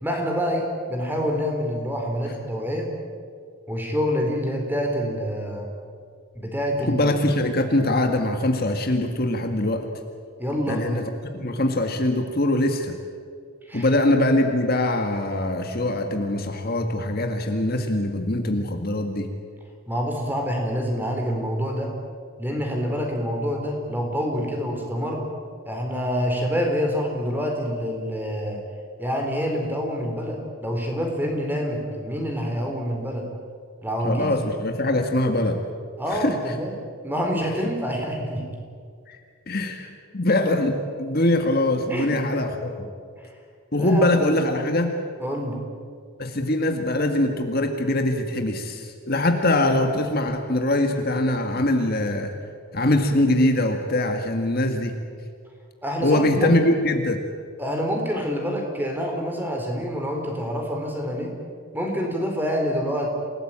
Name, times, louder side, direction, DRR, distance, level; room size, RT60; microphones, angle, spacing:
voice 1, 0.0-2.9 3.7-5.7 6.3-7.2 10.4-10.8 13.7-13.9 19.9-21.9 22.4-25.3 25.6-28.6 29.0-33.3 33.8-34.3 36.0-36.8 37.0-38.5 41.9-42.1 43.2-43.3 43.7-44.4 45.2-45.6 55.8-56.6 57.6-61.3 61.7-63.1, equal, 10° right, 2 dB, 4.2 m, -27 dB
voice 2, 6.8-9.9 10.7-11.0 11.3-13.0 13.7-19.3 34.0-35.6 36.1-36.4 39.1-39.2 39.5-42.9 43.7-44.9 46.2-52.3 52.7-55.0 56.0-57.2, left 1 dB, 45° left, 4 dB, 1.9 m, -22 dB
28.0 x 18.5 x 8.9 m, 2.1 s
head